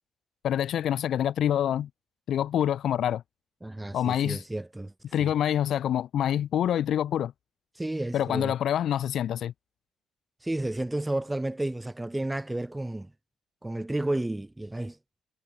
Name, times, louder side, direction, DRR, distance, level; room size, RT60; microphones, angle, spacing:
voice 1, 0.4-1.9 2.3-3.2 3.9-4.4 5.1-7.3 8.1-9.5, left 10 dB, 65° left, 1.7 m, -26 dB
voice 2, 3.6-4.9 5.2-5.3 7.8-8.5 10.4-13.1 13.6-15.0, right 1 dB, 10° right, 3.9 m, -31 dB
supercardioid pair, 60°, 0 cm